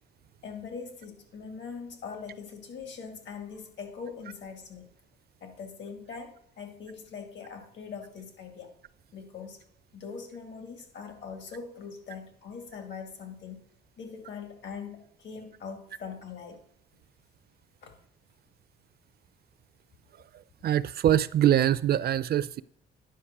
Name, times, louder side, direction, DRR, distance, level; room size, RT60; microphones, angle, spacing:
voice 1, 0.4-4.9 5.4-8.7 9.1-9.6 9.9-13.6 14.0-16.6 17.8-17.9, left 6 dB, 65° left, 2.2 m, -42 dB
voice 2, 20.6-22.6, right 11 dB, 50° right, 0.4 m, -23 dB
10.0 x 5.2 x 5.9 m
cardioid pair, 90°, 20 cm